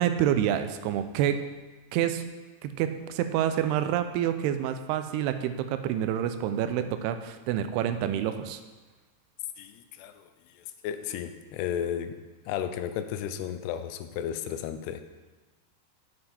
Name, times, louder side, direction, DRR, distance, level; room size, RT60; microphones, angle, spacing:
voice 1, 0.0-1.5 1.9-2.2 2.6-8.6, right 10 dB, 90° right, 10 dB, 2.6 m, -28 dB
voice 2, 9.6-10.3 10.8-12.2 12.5-15.0, left 9 dB, 90° left, 10 dB, 2.7 m, -33 dB
7.9 x 7.6 x 4.2 m, 1.2 s
omnidirectional pair, 4.6 m